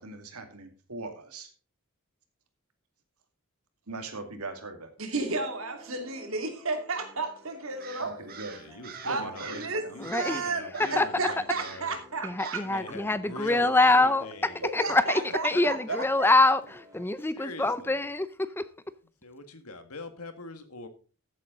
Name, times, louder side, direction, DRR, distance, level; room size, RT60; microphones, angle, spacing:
voice 1, 0.0-1.5 3.9-4.9 8.0-8.6 9.1-10.0, right 3 dB, 85° right, 2.4 m, -40 dB
voice 2, 5.0-8.1 9.0-9.8 10.1-12.6 14.8-14.9 15.3-15.7, right 3 dB, 65° right, 2.6 m, -32 dB
sound 1, 5.3-17.1, equal, 15° right, 2.1 m, -53 dB
Crow, 7.8-9.7 10.0-10.4 10.7-11.1 11.5-11.9 12.4-12.7, right 6 dB, 40° right, 1.7 m, -45 dB
voice 3, 8.5-11.9 12.6-14.6 15.5-16.0 17.3-17.9 19.2-20.9, left 2 dB, 85° left, 1.9 m, -42 dB
voice 4, 10.0-10.5 10.8-11.1 11.7-11.8 12.2-18.9, left 2 dB, 10° left, 0.4 m, -25 dB
14.0 x 8.4 x 3.9 m
head